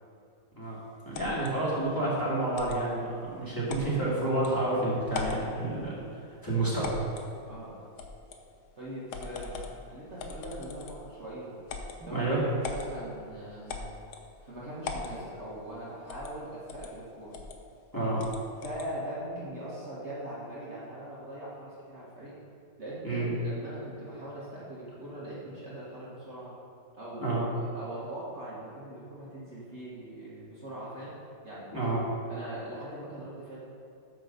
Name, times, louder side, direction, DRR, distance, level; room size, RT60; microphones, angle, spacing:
voice 1, 1.0-5.9 6.4-6.9 12.0-12.4 17.9-18.2 23.0-23.3 27.2-27.4 31.7-32.0, right 2 dB, 10° left, -8 dB, 2.0 m, -29 dB
sound 1, 1.1-1.5 2.6-2.8 3.7-3.9 4.4-4.5 5.1-5.5 6.8-7.3 8.0-8.4 9.1-9.8 10.2-11.1 11.7-12.0 12.6-12.9 13.7-14.3 14.8-15.2 16.1-16.4 16.7-16.9 17.3-17.6 18.2-18.9, left 4 dB, 70° left, 1.3 m, -39 dB
voice 2, 7.5-7.8 8.8-11.5 12.0-14.0 14.4-17.4 18.6-22.3 22.8-26.5 26.9-31.2 31.4-31.7 32.3-33.6, right 1 dB, 40° right, -8 dB, 1.6 m, -41 dB
9.2 x 4.0 x 6.6 m, 2.5 s
omnidirectional pair, 1.9 m